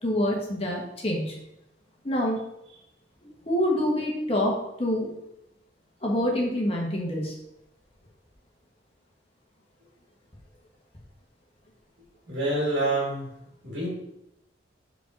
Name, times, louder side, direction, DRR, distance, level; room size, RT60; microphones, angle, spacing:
voice 1, 0.0-1.4 2.0-2.4 3.4-5.1 6.0-7.4, left 1 dB, 30° left, -2 dB, 1.5 m, -26 dB
voice 2, 12.3-13.3 13.6-13.9, right 2 dB, 75° right, -6 dB, 2.5 m, -27 dB
5.1 x 4.6 x 6.0 m, 0.85 s
head